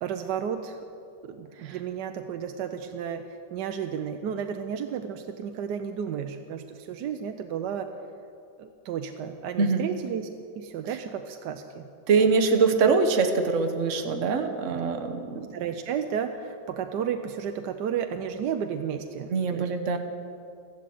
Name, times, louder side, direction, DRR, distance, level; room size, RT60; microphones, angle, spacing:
voice 1, 0.0-0.8 1.2-7.9 8.6-10.3 10.6-11.9 12.2-12.3 14.7-14.8 15.3-19.7, right 8 dB, 70° right, 6 dB, 1.2 m, -33 dB
voice 2, 12.1-15.5 19.3-20.0, right 4 dB, 45° right, 5 dB, 1.2 m, -23 dB
14.5 x 12.0 x 7.7 m, 2.5 s
omnidirectional pair, 2.1 m